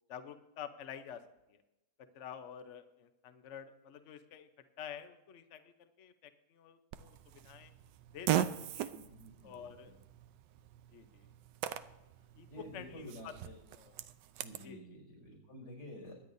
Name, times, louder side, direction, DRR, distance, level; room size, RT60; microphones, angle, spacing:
voice 1, 0.1-1.2 1.5-1.6 2.1-4.5 4.8-7.7 8.1-8.5 8.7-8.9 9.4-10.0 10.9-11.3 12.3-13.3 13.7-14.0 14.6-14.9, left 8 dB, 50° left, 9 dB, 1.0 m, -49 dB
Fart, 6.9-14.7, right 11 dB, 80° right, 1.3 m, -40 dB
voice 2, 8.9-9.9 12.5-13.5 14.4-16.1, equal, 75° left, 0 dB, 6.4 m, -50 dB
23.5 x 10.0 x 2.7 m, 0.95 s
omnidirectional pair, 1.9 m